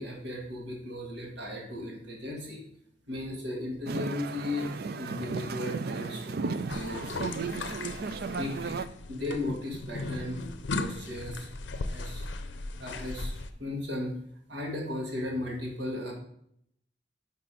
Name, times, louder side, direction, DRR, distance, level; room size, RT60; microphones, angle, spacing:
voice 1, 0.0-2.6 3.1-4.7 4.9-7.9 8.3-8.8 9.1-10.4 10.7-12.3 12.8-14.2 14.5-16.1, left 1 dB, 75° right, -1 dB, 1.8 m, -36 dB
sound 1, 3.9-8.9, right 4 dB, 55° right, 0.4 m, -35 dB
sound 2, 6.7-13.5, left 3 dB, 80° left, 0.5 m, -37 dB
5.9 x 5.2 x 5.1 m, 0.71 s
head